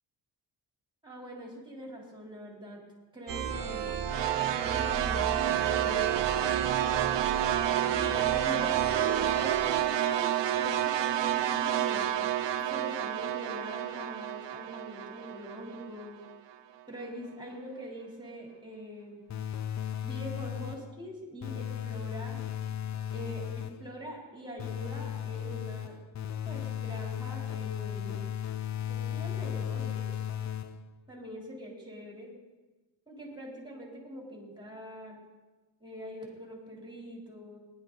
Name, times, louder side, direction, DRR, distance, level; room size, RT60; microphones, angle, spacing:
voice 1, 1.0-2.8 3.1-3.9 4.5-6.8 7.9-12.2 12.6-16.2 16.9-19.2 20.0-22.4 23.1-26.0 26.5-28.3 28.9-30.1 31.1-32.3 33.1-35.2 35.8-37.6, equal, 10° right, -2 dB, 3.5 m, -43 dB
sound 1, 3.3-9.8, right 7 dB, 50° right, 1.0 m, -35 dB
sound 2, 4.1-16.3, right 11 dB, 80° right, 0.8 m, -29 dB
sound 3, 19.3-21.0 21.4-23.9 24.6-31.0, left 9 dB, 40° left, 0.5 m, -35 dB
18.5 x 11.0 x 4.0 m, 1.2 s
wide cardioid pair, 130°, 43 cm